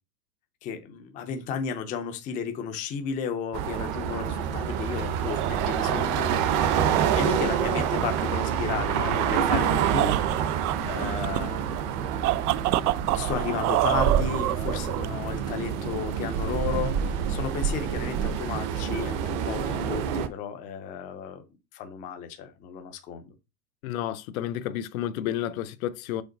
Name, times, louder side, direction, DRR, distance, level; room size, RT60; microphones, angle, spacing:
voice 1, 0.6-10.2 10.8-11.6 12.5-21.4 21.7-23.3, left 7 dB, 20° left, 0.5 m, -34 dB
sound 1, 3.5-20.3, right 8 dB, 35° right, 0.7 m, -27 dB
sound 2, 5.0-15.4, right 16 dB, 70° right, 0.6 m, -30 dB
voice 2, 23.8-26.2, left 11 dB, 60° left, 0.8 m, -31 dB
5.2 x 4.8 x 3.9 m
supercardioid pair, 150°, 47 cm